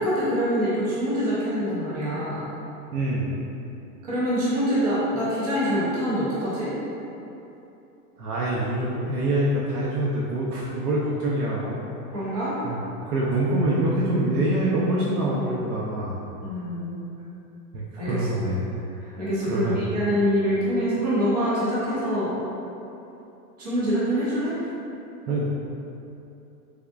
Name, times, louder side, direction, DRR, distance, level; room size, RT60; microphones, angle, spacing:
voice 1, 0.0-2.5 4.0-6.7 12.1-12.5 16.4-17.0 18.0-18.3 19.2-22.3 23.6-24.5, equal, 30° right, -10 dB, 0.4 m, -25 dB
voice 2, 2.9-3.3 8.2-11.8 12.6-16.2 17.7-18.6 19.0-19.2 19.5-19.8 25.3-25.4, right 1 dB, 70° right, -5 dB, 0.6 m, -25 dB
3.5 x 3.5 x 2.3 m, 2.9 s
supercardioid pair, 180°, 48 cm